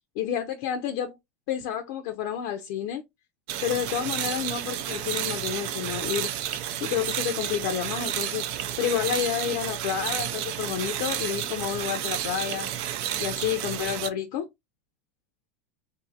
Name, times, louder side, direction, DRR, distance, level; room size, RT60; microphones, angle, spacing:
voice 1, 0.2-1.2 1.5-3.0 3.6-6.3 6.8-8.5 8.8-12.7 13.2-14.5, left 9 dB, 60° left, 0.5 m, -29 dB
sound 1, 3.5-14.1, right 11 dB, 60° right, 0.4 m, -31 dB
2.6 x 2.5 x 2.6 m
hypercardioid pair, 95°, 7 cm